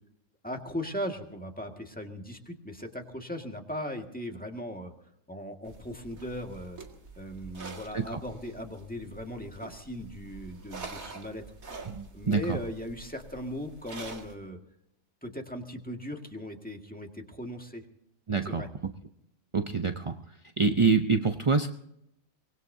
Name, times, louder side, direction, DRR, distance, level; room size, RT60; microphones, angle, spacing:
voice 1, 0.4-4.9 5.3-6.8 7.2-11.4 12.1-14.6 15.2-17.8 18.4-18.7, equal, 5° left, 2 dB, 1.8 m, -38 dB
sound 1, 5.6-14.3, right 3 dB, 80° right, 2.5 m, -46 dB
voice 2, 11.9-12.6 18.3-18.6 19.5-20.2 20.6-21.7, right 4 dB, 35° right, 7 dB, 0.5 m, -26 dB
24.0 x 20.5 x 2.8 m, 0.78 s
omnidirectional pair, 1.4 m